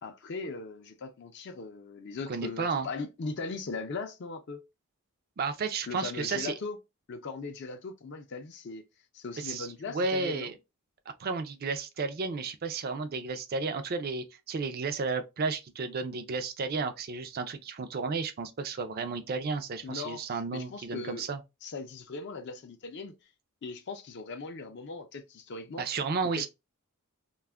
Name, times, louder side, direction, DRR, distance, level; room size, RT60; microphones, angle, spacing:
voice 1, 0.0-4.7 5.9-6.8 7.1-8.8 9.1-10.5 19.8-20.2 20.5-21.2 21.6-23.1 23.6-25.9 26.2-26.5, left 4 dB, 50° left, 0.4 m, -39 dB
voice 2, 2.3-2.9 5.4-6.5 9.4-9.7 9.9-10.5 11.2-21.4 25.8-26.5, right 4 dB, 45° right, 0.4 m, -32 dB
2.3 x 2.1 x 3.3 m
head